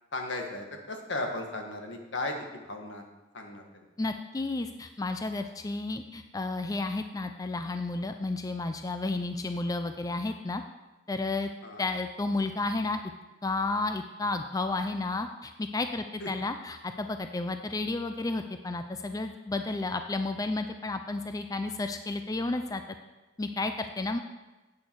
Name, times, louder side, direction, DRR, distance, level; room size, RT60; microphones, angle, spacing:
voice 1, 0.1-3.0 3.3-3.9 11.6-11.8 16.2-16.3, left 2 dB, 75° left, 3 dB, 1.6 m, -36 dB
voice 2, 4.0-10.6 11.1-11.5 11.8-13.0 13.4-22.8 23.4-24.2, left 2 dB, 20° left, 7 dB, 0.4 m, -32 dB
10.5 x 8.5 x 4.6 m, 1.1 s
head